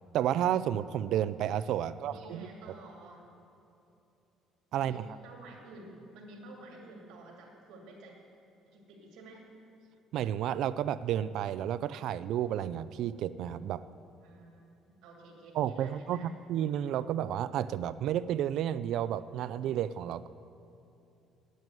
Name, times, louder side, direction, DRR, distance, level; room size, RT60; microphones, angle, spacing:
voice 1, 0.1-2.5 4.7-5.1 10.1-13.8 15.6-16.2 16.5-20.3, right 10 dB, 55° right, 15 dB, 0.3 m, -31 dB
voice 2, 1.9-3.2 4.8-8.2 8.6-9.5 14.2-16.3, right 2 dB, 85° right, -1 dB, 2.4 m, -51 dB
9.3 x 9.0 x 9.1 m, 2.9 s
cardioid pair, 180°, 0 cm